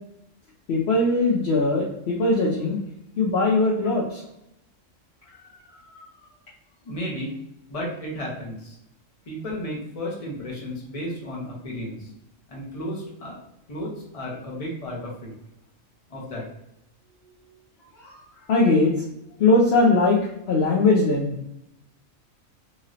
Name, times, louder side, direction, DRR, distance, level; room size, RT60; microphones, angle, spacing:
voice 1, 0.7-2.8 3.2-4.2 18.0-18.1 18.5-19.0 19.4-20.2 20.5-21.3, left 2 dB, 60° left, -4 dB, 0.8 m, -20 dB
voice 2, 6.8-7.3 7.7-8.8 9.3-12.1 12.5-13.4 13.7-15.3 16.1-16.4, equal, 30° left, -3 dB, 0.8 m, -33 dB
3.0 x 2.8 x 2.4 m, 0.82 s
omnidirectional pair, 1.4 m